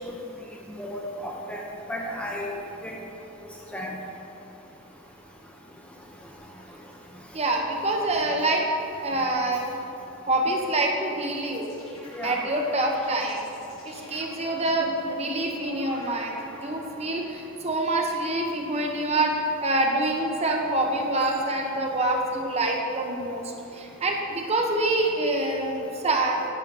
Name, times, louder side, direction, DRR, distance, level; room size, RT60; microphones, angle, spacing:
voice 1, 0.8-1.6 1.9-2.5 2.8-3.0 3.7-3.9 12.1-12.4, left 1 dB, 5° left, -2 dB, 0.7 m, -33 dB
voice 2, 7.3-8.6 9.0-9.8 10.3-11.7 12.2-13.5 13.8-19.3 19.6-25.8 26.0-26.4, right 2 dB, 30° right, 1 dB, 0.9 m, -26 dB
sound 1, 11.2-17.4, left 2 dB, 85° left, 1.7 m, -43 dB
10.5 x 3.8 x 7.1 m, 2.9 s
head